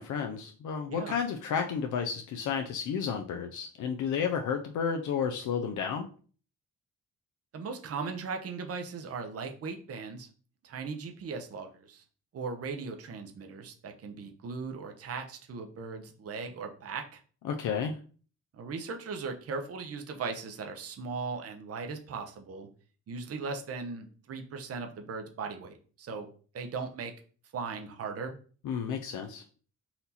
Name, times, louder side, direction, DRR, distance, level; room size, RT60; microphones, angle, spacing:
voice 1, 0.0-6.1 17.4-18.0 28.6-29.4, left 7 dB, 70° left, 4 dB, 0.6 m, -32 dB
voice 2, 7.5-10.3 10.6-12.0 12.3-17.2 18.5-22.7 23.1-26.3 26.5-27.1 27.5-28.4, right 4 dB, 50° right, 4 dB, 0.8 m, -38 dB
4.3 x 2.7 x 4.1 m, 0.41 s
cardioid pair, 80°, 31 cm